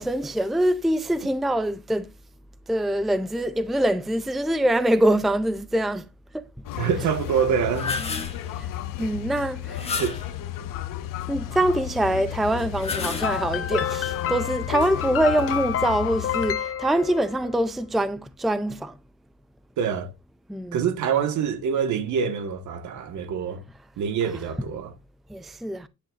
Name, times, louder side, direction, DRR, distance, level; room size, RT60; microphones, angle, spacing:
voice 1, 0.0-2.1 2.7-6.0 6.3-6.4 8.6-8.7 9.0-10.0 11.3-18.9 20.5-20.8 25.3-25.9, right 1 dB, ahead, 0.5 m, -24 dB
sound 1, 6.6-16.5, left 12 dB, 85° left, 1.3 m, -33 dB
voice 2, 6.8-8.0 10.0-10.2 19.8-20.1 20.7-23.6 24.0-24.9, right 7 dB, 65° right, 1.7 m, -25 dB
sound 2, 7.5-8.5 9.7-10.4 12.6-13.7, left 4 dB, 20° left, 2.0 m, -31 dB
sound 3, 12.9-17.5, left 9 dB, 45° left, 1.1 m, -29 dB
10.5 x 10.0 x 2.5 m
cardioid pair, 150°, 31 cm